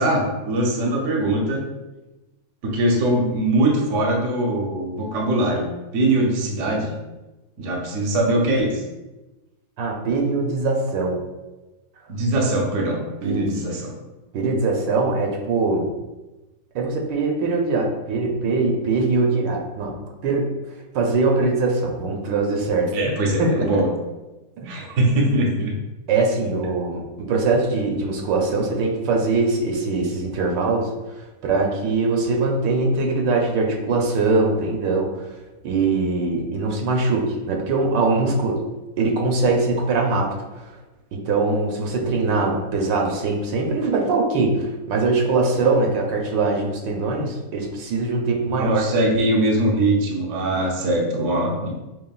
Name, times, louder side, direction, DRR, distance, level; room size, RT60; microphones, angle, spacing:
voice 1, 0.0-1.6 2.6-6.9 7.6-8.8 12.1-13.9 22.9-23.9 24.7-25.7 48.6-51.7, right 1 dB, 60° right, 0 dB, 0.9 m, -22 dB
voice 2, 9.8-11.2 13.2-13.5 14.3-15.9 16.7-20.5 20.9-22.9 23.4-23.8 24.6-24.7 26.1-35.1 35.6-38.6 39.0-40.3 40.6-40.7 41.1-48.8, right 3 dB, 85° right, 1 dB, 1.4 m, -22 dB
6.2 x 2.3 x 2.3 m, 1.1 s
omnidirectional pair, 1.9 m